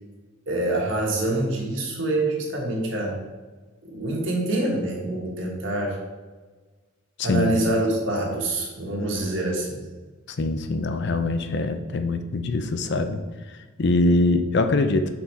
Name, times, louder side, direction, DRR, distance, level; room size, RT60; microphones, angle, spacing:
voice 1, 0.5-3.2 3.8-6.0 7.2-9.8, right 2 dB, 60° right, -1 dB, 1.4 m, -26 dB
voice 2, 7.2-7.6 10.4-13.2 13.5-15.1, left 2 dB, 55° left, 8 dB, 0.5 m, -23 dB
5.9 x 4.1 x 4.5 m, 1.3 s
head